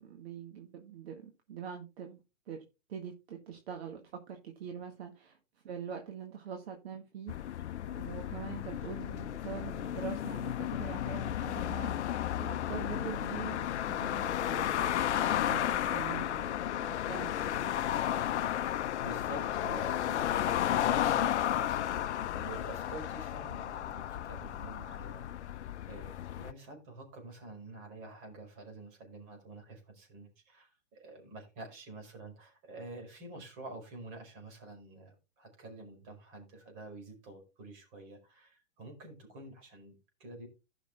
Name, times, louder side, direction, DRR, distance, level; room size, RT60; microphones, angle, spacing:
voice 1, 0.0-2.2 2.5-2.6 2.9-5.4 5.6-17.7, right 7 dB, 55° right, 1.9 m, -44 dB
sound 1, 7.3-26.5, left 11 dB, 60° left, 0.6 m, -33 dB
voice 2, 19.0-40.5, right 2 dB, 35° right, 5.1 m, -48 dB
16.0 x 6.1 x 2.4 m
hypercardioid pair, 135°, 38 cm